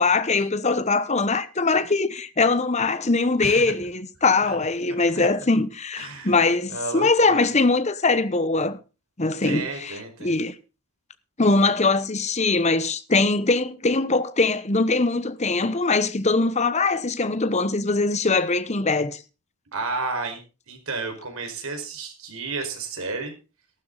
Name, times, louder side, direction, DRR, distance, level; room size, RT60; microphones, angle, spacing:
voice 1, 0.0-8.8 9.2-10.5 11.4-19.2, left 3 dB, 30° left, 1.0 m, -22 dB
voice 2, 3.4-3.7 4.4-4.6 6.0-6.3 6.7-7.5 9.4-10.3 19.7-20.4 20.7-23.3, right 3 dB, 70° right, 4.8 m, -32 dB
14.0 x 12.5 x 3.9 m
head